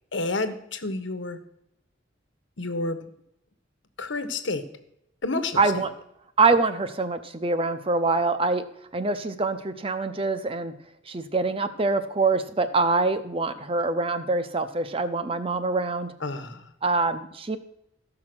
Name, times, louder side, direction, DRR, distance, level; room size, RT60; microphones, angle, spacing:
voice 1, 0.1-1.4 2.6-3.0 4.0-4.6 5.2-5.6 16.2-16.6, left 2 dB, 85° left, 9 dB, 1.3 m, -29 dB
voice 2, 5.6-5.9 6.4-8.6 8.9-10.7 11.1-16.1 16.8-17.6, right 3 dB, 30° right, 10 dB, 0.8 m, -24 dB
14.5 x 5.9 x 6.1 m, 0.79 s
head